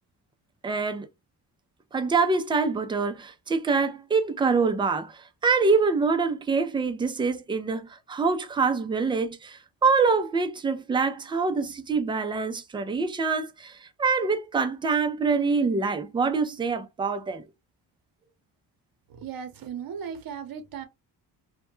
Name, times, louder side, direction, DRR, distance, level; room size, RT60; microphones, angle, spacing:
voice 1, 0.6-1.1 1.9-17.4, right 4 dB, 15° right, 0.3 m, -25 dB
voice 2, 19.2-20.8, right 7 dB, 55° right, 0.8 m, -36 dB
2.1 x 2.1 x 3.0 m
cardioid pair, 100°, 42 cm